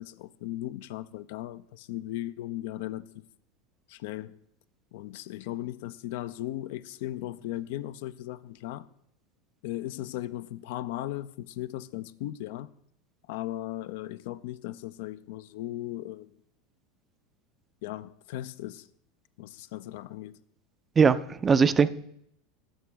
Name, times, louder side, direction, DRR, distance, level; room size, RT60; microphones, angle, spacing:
voice 1, 0.0-3.1 3.9-4.4 4.9-8.9 9.6-12.7 13.3-16.3 17.8-18.9 19.4-20.3, left 14 dB, 60° left, 0.3 m, -37 dB
voice 2, 21.0-21.9, right 5 dB, 25° right, 0.4 m, -20 dB
12.5 x 5.0 x 3.3 m
figure-of-eight pair, 80°, 0 cm